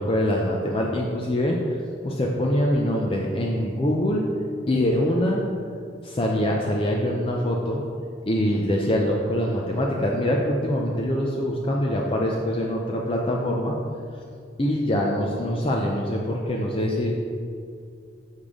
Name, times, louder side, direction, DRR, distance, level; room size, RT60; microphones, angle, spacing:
voice 1, 0.0-4.2 4.7-5.4 6.0-7.8 8.3-13.8 14.6-17.1, left 1 dB, 30° left, -1 dB, 0.5 m, -24 dB
6.9 x 6.5 x 3.7 m, 2.3 s
head